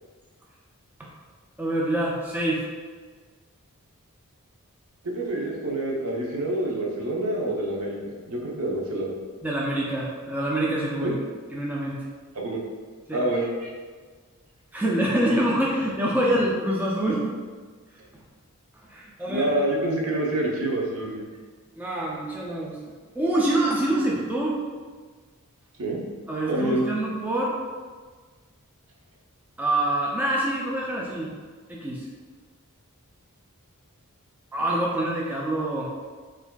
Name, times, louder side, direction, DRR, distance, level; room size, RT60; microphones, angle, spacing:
voice 1, 1.6-2.6 9.4-11.1 11.5-12.0 13.1-13.2 14.7-17.2 18.9-19.5 21.8-22.8 23.1-24.6 26.3-27.5 29.6-31.3 31.7-32.1 34.5-35.9, right 1 dB, 10° right, -4 dB, 0.3 m, -25 dB
voice 2, 5.0-9.1 11.0-11.1 12.3-12.6 13.1-13.7 19.3-21.3 25.8-26.0 26.5-26.8, right 1 dB, 65° right, -2 dB, 0.6 m, -27 dB
4.5 x 2.5 x 2.2 m, 1.5 s
head